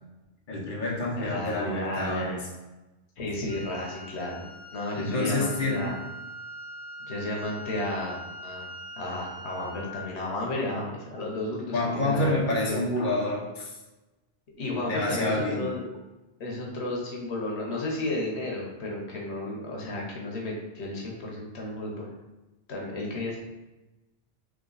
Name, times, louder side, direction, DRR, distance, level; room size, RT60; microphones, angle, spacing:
voice 1, 0.5-2.4 4.9-5.9 11.7-13.7 14.8-15.8, left 2 dB, 50° left, -3 dB, 1.1 m, -28 dB
voice 2, 1.2-2.4 3.2-4.4 4.7-5.9 7.0-8.7 9.0-12.4 12.7-12.8 14.6-15.8 16.4-22.1 22.7-23.4, left 2 dB, 85° left, -2 dB, 1.2 m, -33 dB
Wind instrument woodwind instrument, 3.5-10.1, equal, 5° left, 1.1 m, -42 dB
3.7 x 3.2 x 3.9 m, 1.1 s
omnidirectional pair, 1.1 m